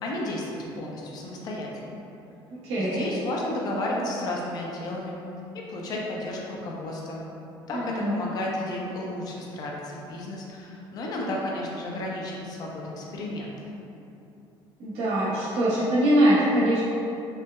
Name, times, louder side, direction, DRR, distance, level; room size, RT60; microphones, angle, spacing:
voice 1, 0.0-2.0 2.8-5.1 5.5-7.2 7.7-13.5, left 1 dB, 40° left, -2 dB, 0.6 m, -32 dB
voice 2, 2.6-3.1 7.7-8.2 14.8-16.8, right 1 dB, 85° right, -10 dB, 1.0 m, -23 dB
4.4 x 3.2 x 2.2 m, 2.8 s
cardioid pair, 165°, 10 cm